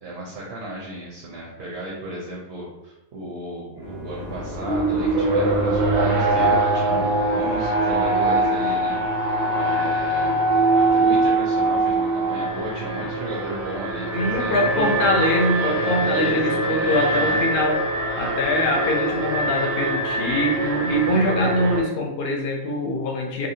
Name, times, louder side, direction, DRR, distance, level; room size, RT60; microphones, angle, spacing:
voice 1, 0.0-10.4 10.7-14.9 15.6-17.4, right 1 dB, 70° right, -3 dB, 0.8 m, -34 dB
Bowed string instrument, 3.8-8.7, left 8 dB, 35° left, 0.4 m, -40 dB
Alarm, 3.9-21.8, right 2 dB, 55° right, 0.5 m, -23 dB
voice 2, 14.1-17.8 18.2-23.5, left 1 dB, 70° left, 1 dB, 0.8 m, -23 dB
2.7 x 2.1 x 2.6 m, 0.93 s
omnidirectional pair, 1.1 m